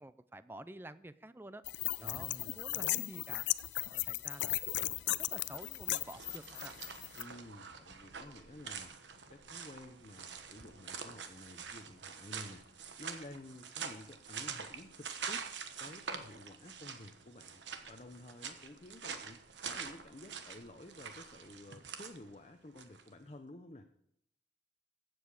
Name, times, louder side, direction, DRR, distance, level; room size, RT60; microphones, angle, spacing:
voice 1, 0.0-1.6 2.0-3.5 3.8-6.7, right 1 dB, 10° right, 14 dB, 0.4 m, -50 dB
sound 1, 1.7-7.2, left 15 dB, 85° left, 0.4 m, -36 dB
voice 2, 2.0-2.6 7.1-8.9 9.3-15.5 15.8-17.6 17.9-23.9, left 1 dB, 35° left, 5 dB, 0.7 m, -52 dB
sound 2, 5.5-23.1, right 6 dB, 90° right, 1.2 m, -46 dB
15.5 x 7.8 x 4.9 m, 0.76 s
head